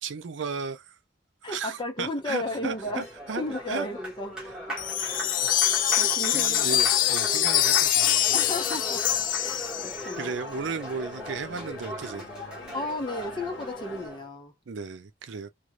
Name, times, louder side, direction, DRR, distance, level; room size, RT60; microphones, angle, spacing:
voice 1, 0.0-1.0 1.4-3.9 5.0-5.2 5.6-5.8 6.3-8.4 9.5-9.9 10.2-12.3 14.7-15.5, right 5 dB, 75° right, 0.5 m, -35 dB
voice 2, 1.4-3.1 3.4-4.4 5.0-5.3 6.0-6.7 8.3-9.0 9.4-10.3 12.7-14.5, left 2 dB, 25° left, 0.8 m, -34 dB
Applause, 2.4-14.3, left 1 dB, 5° right, 1.2 m, -38 dB
Wind chime, 4.8-10.1, left 12 dB, 45° left, 0.4 m, -24 dB
sound 1, 8.5-14.1, left 2 dB, 65° left, 0.7 m, -46 dB
2.5 x 2.3 x 3.0 m
head